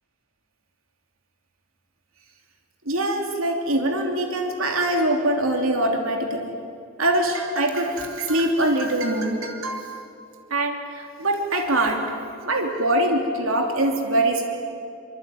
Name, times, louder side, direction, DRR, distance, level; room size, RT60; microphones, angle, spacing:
voice 1, 2.8-6.5 7.0-9.9 10.5-12.0 12.4-14.5, right 1 dB, 75° right, 3 dB, 3.0 m, -23 dB
25.0 x 25.0 x 9.4 m, 2.5 s
head